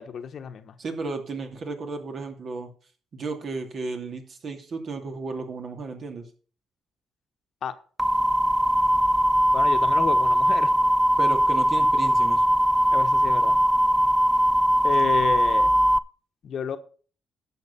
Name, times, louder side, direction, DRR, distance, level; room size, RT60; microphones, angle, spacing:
voice 1, 0.0-0.7 7.6-7.7 9.5-10.7 12.9-13.6 14.8-15.7 16.4-16.8, left 7 dB, 60° left, 1.2 m, -31 dB
voice 2, 0.8-2.7 3.1-6.3 11.2-12.4, right 3 dB, 50° right, 2.6 m, -33 dB
sound 1, 8.0-16.0, equal, 10° right, 0.4 m, -20 dB
11.0 x 6.6 x 5.8 m
cardioid pair, 90°, 0 cm